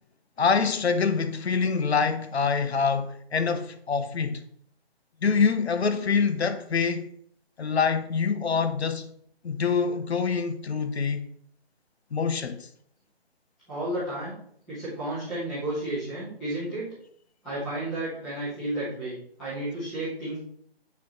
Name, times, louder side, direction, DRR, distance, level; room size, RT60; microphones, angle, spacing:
voice 1, 0.4-4.4 5.2-7.1 7.6-9.1 9.4-11.2 12.1-12.7, left 5 dB, 80° left, 0.9 m, -25 dB
voice 2, 13.7-14.4 14.7-16.9 17.4-20.4, right 1 dB, ahead, 0.8 m, -32 dB
8.4 x 4.3 x 3.1 m
hypercardioid pair, 170°, 32 cm